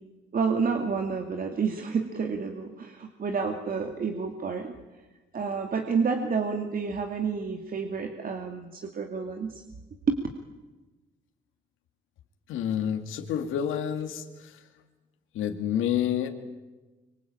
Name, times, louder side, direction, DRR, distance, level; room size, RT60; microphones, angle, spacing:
voice 1, 0.3-4.7 5.3-9.6 10.1-10.2, right 5 dB, 45° right, 4 dB, 2.5 m, -29 dB
voice 2, 12.5-14.2 15.4-16.3, left 9 dB, 85° left, 5 dB, 2.3 m, -28 dB
25.0 x 24.5 x 8.9 m, 1.2 s
cardioid pair, 90°, 20 cm